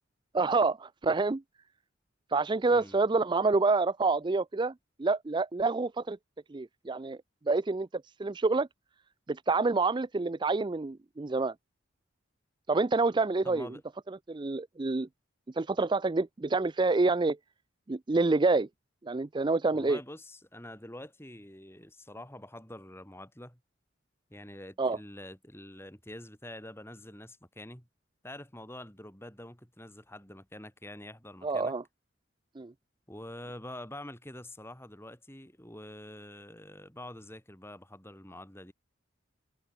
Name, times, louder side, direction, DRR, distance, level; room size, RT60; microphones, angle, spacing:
voice 1, 0.3-1.4 2.3-4.7 5.0-6.2 6.5-7.2 7.5-8.7 9.3-11.5 12.7-13.7 14.3-15.1 15.5-17.4 17.9-18.7 19.0-20.0 24.8-25.0 31.4-31.8 32.6-32.7, right 3 dB, 25° right, 0.4 m, -27 dB
voice 2, 2.7-3.0 13.4-13.8 19.7-23.6 24.3-27.9 28.2-31.7 33.1-38.7, left 1 dB, 10° left, 6.5 m, -46 dB
head